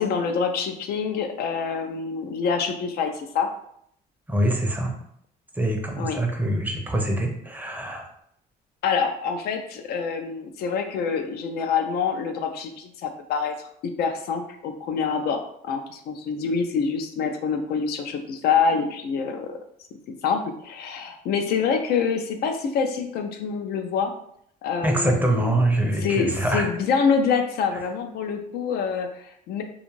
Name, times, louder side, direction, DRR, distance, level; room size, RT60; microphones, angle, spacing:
voice 1, 0.0-3.5 6.0-6.2 8.8-19.6 20.2-24.1 24.6-25.6 25.9-29.6, left 6 dB, 70° left, 6 dB, 0.4 m, -26 dB
voice 2, 4.3-4.9 5.6-8.0 24.8-26.7, right 1 dB, 10° right, 1 dB, 0.5 m, -24 dB
2.5 x 2.3 x 3.0 m, 0.70 s
cardioid pair, 110°, 17 cm